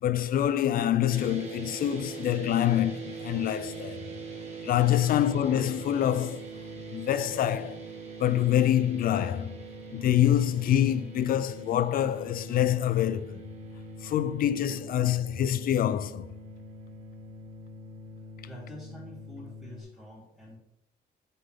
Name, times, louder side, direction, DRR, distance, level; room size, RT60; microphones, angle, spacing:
voice 1, 0.0-4.0 4.6-6.5 6.9-7.8 8.2-9.5 9.9-13.4 14.0-16.3, left 11 dB, 65° left, 0.5 m, -26 dB
sound 1, 1.1-19.8, right 3 dB, 40° right, 2.0 m, -42 dB
voice 2, 18.4-20.6, equal, ahead, 3.0 m, -47 dB
7.5 x 5.7 x 3.7 m
cardioid pair, 120°, 16 cm